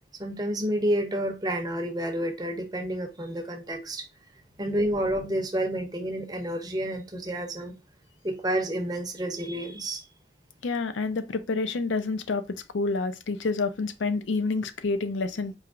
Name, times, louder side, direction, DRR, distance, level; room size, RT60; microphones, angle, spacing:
voice 1, 0.2-4.1 4.6-7.7 8.2-10.0, right 1 dB, 20° right, 0.6 m, -29 dB
voice 2, 10.6-12.4 12.7-15.6, left 3 dB, 75° left, 0.5 m, -28 dB
4.7 x 2.8 x 2.4 m
head